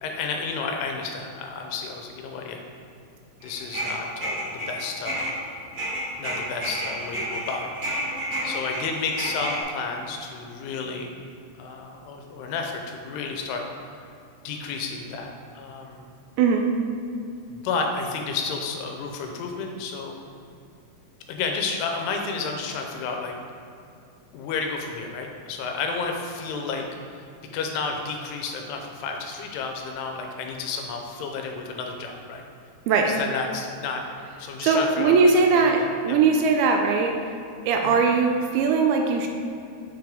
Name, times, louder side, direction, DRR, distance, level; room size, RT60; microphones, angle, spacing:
voice 1, 0.0-2.6 3.4-5.3 6.2-7.7 8.4-11.2 11.6-13.6 14.4-16.1 17.5-20.2 21.3-23.3 24.3-26.9 27.1-27.2 27.5-32.4 33.1-34.0 34.4-36.2 37.8-38.0, left 4 dB, 90° left, 3 dB, 2.7 m, -31 dB
sound 1, 3.4-5.4 5.7-9.6, right 1 dB, 50° right, 2.4 m, -30 dB
voice 2, 34.6-37.1 37.7-39.3, right 4 dB, 80° right, 3 dB, 2.4 m, -20 dB
7.3 x 5.8 x 3.5 m, 2.5 s
omnidirectional pair, 4.7 m